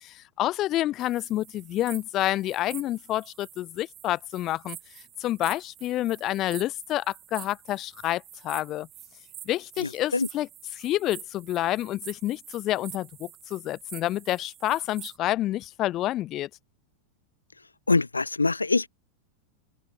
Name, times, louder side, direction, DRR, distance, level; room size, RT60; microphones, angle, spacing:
voice 1, 0.0-4.8 5.2-8.9 9.4-16.5, left 14 dB, 35° left, 1.4 m, -28 dB
sound 1, 1.0-15.2, right 12 dB, 30° right, 2.2 m, -47 dB
voice 2, 9.8-10.3 17.9-18.9, left 3 dB, 80° left, 0.8 m, -24 dB
figure-of-eight pair, 90°, 0 cm